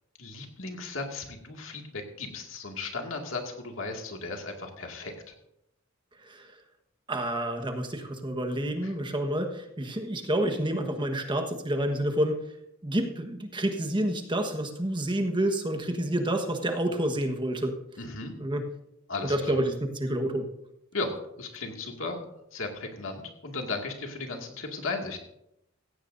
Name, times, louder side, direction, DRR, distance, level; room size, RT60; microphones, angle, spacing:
voice 1, 0.2-5.3 8.8-8.9 18.0-18.3 19.1-19.6 20.9-21.1 21.4-22.2 22.5-25.2, left 3 dB, 75° left, 2 dB, 2.2 m, -36 dB
voice 2, 6.2-6.5 7.1-12.4 12.8-17.7 18.4-18.6 19.2-20.5, right 1 dB, 25° right, 5 dB, 1.3 m, -29 dB
16.5 x 15.5 x 2.7 m, 0.81 s
head